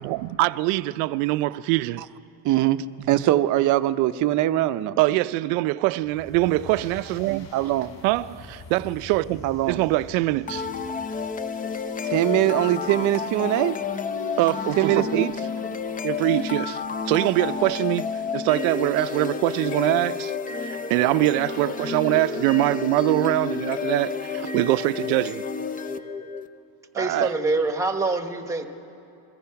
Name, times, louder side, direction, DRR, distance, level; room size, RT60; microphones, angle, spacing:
voice 1, 0.0-2.0 3.1-3.2 5.0-7.5 8.0-10.7 14.4-15.2 16.0-20.3 20.6-25.4, right 18 dB, 85° right, 0.7 m, -23 dB
voice 2, 2.4-5.0 7.5-7.9 9.4-9.8 12.0-13.8 14.8-15.3 27.0-27.3, right 14 dB, 40° right, 0.6 m, -22 dB
sound 1, 6.0-11.3, left 4 dB, 35° left, 4.4 m, -45 dB
sound 2, 10.5-26.5, left 5 dB, 20° left, 0.5 m, -30 dB
voice 3, 26.9-28.7, right 3 dB, 5° right, 1.1 m, -25 dB
28.5 x 23.0 x 5.8 m
cardioid pair, 160°, 47 cm